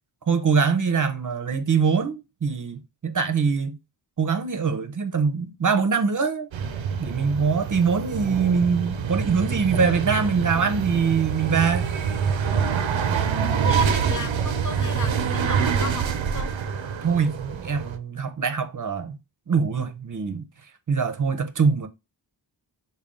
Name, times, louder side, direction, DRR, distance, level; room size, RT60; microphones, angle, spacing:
voice 1, 0.3-3.8 4.2-6.5 7.0-11.9 13.1-13.2 17.0-19.2 19.5-20.4 20.9-21.9, right 5 dB, 45° right, 0.6 m, -23 dB
sound 1, 6.5-18.0, right 7 dB, 90° right, 0.6 m, -26 dB
voice 2, 13.6-16.5, left 5 dB, 45° left, 0.5 m, -35 dB
3.4 x 2.3 x 3.7 m
wide cardioid pair, 65°, 45 cm